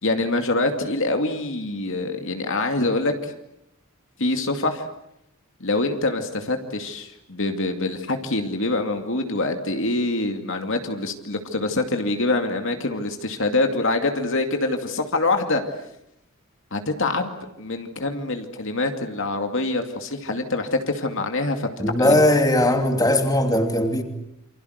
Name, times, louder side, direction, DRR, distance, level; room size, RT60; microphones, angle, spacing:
voice 1, 0.0-3.3 4.2-4.9 5.6-15.6 16.7-17.3 17.6-21.7 22.0-22.2, left 2 dB, 60° left, 5 dB, 2.5 m, -25 dB
voice 2, 21.8-24.0, left 1 dB, 15° left, 5 dB, 2.9 m, -19 dB
28.5 x 25.5 x 8.1 m, 0.83 s
head